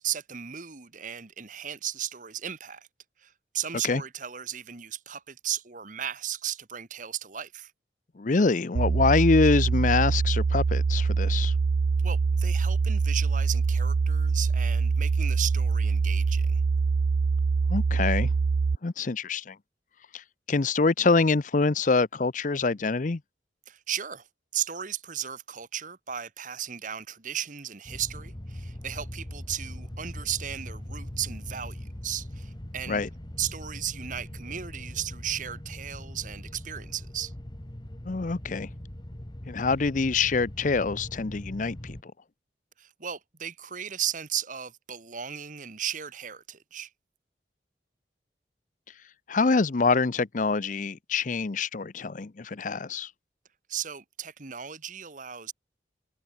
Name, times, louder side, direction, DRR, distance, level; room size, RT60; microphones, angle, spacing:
voice 1, 0.0-2.9 3.2-7.7 12.0-16.6 23.7-24.3 24.5-33.0 33.4-37.3 42.8-46.9 53.7-55.5, right 10 dB, 45° right, 1.5 m, -35 dB
voice 2, 8.2-11.5 17.7-18.3 18.8-19.6 20.1-23.2 32.9-33.1 38.0-38.7 39.5-42.1 49.3-53.1, left 4 dB, 45° left, 0.6 m, -25 dB
sound 1, 8.8-18.8, right 4 dB, 75° right, 0.4 m, -24 dB
sound 2, 27.9-42.0, left 1 dB, 25° left, 1.4 m, -41 dB
head